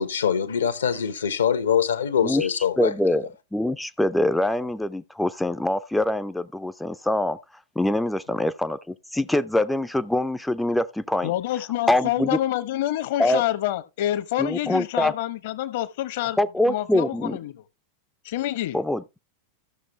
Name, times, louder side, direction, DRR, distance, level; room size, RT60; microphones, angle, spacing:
voice 1, 0.0-2.9, left 7 dB, 70° left, 1.2 m, -23 dB
voice 2, 2.8-7.4 7.8-11.3 11.9-12.3 13.2-13.4 14.4-15.1 16.4-17.4 18.7-19.0, left 1 dB, 5° left, 0.5 m, -24 dB
voice 3, 11.2-16.4 16.6-17.5 18.2-18.8, left 13 dB, 50° left, 1.1 m, -27 dB
14.5 x 6.6 x 3.1 m
figure-of-eight pair, 90°, 0 cm